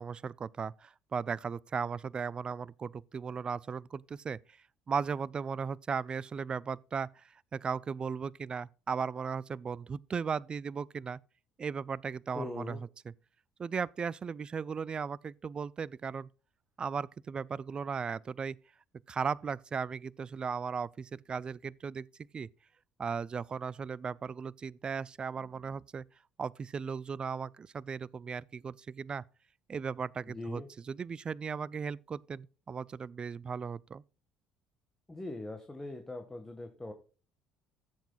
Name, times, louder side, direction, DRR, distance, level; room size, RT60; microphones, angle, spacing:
voice 1, 0.0-4.6 4.9-7.2 7.5-11.2 11.6-12.8 13.6-16.3 16.8-18.6 19.1-22.1 22.3-22.5 23.0-26.0 26.4-29.2 29.7-34.0, right 6 dB, 35° right, 0.4 m, -36 dB
voice 2, 12.3-12.8 30.2-30.7 35.1-36.9, left 2 dB, 15° left, 1.6 m, -41 dB
15.0 x 8.1 x 2.4 m
hypercardioid pair, 55°, 3 cm